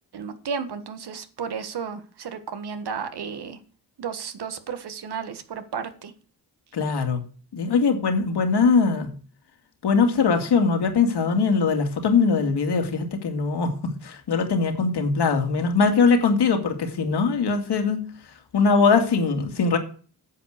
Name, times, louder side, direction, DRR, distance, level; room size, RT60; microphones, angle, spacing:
voice 1, 0.1-3.6 4.0-6.1, right 6 dB, 75° right, 1.6 m, -33 dB
voice 2, 6.7-7.2 7.5-9.1 9.8-18.1 18.5-19.8, left 5 dB, 85° left, 2.3 m, -21 dB
9.6 x 7.8 x 6.6 m
cardioid pair, 95°, 39 cm